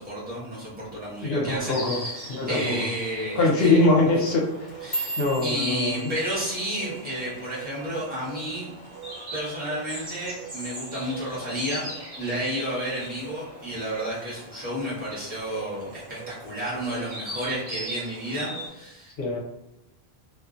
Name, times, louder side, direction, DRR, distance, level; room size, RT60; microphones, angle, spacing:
voice 1, 0.0-3.9 4.8-8.7 9.3-11.9 12.2-19.1, equal, 10° right, -8 dB, 1.1 m, -31 dB
voice 2, 1.2-2.0 2.3-2.8 3.4-4.4 5.2-5.9 19.2-19.4, left 2 dB, 70° left, -2 dB, 0.9 m, -22 dB
Insect, 1.7-18.7, right 1 dB, 45° right, 0.8 m, -40 dB
sound 1, 4.5-8.9 9.2-9.6 10.0-10.4 10.8-11.0 11.6-12.0 12.4-13.2 13.6-14.0 14.8-14.9, right 2 dB, 15° left, 0.7 m, -37 dB
2.6 x 2.4 x 2.4 m, 0.87 s
omnidirectional pair, 1.1 m